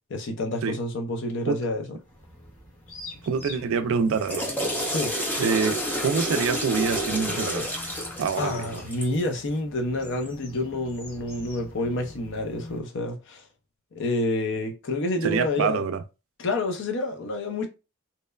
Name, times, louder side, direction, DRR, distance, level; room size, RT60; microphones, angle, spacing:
voice 1, 0.1-2.0 4.9-5.1 8.4-13.4 13.9-15.8 16.4-17.7, left 2 dB, 60° left, 0.5 m, -28 dB
sound 1, 2.0-12.8, left 1 dB, 80° left, 1.3 m, -46 dB
voice 2, 3.2-4.5 5.4-7.7 8.2-8.8 15.2-16.0, right 5 dB, 65° right, 0.3 m, -26 dB
Water / Toilet flush, 4.0-9.3, equal, 10° left, 0.4 m, -29 dB
2.8 x 2.1 x 2.2 m
head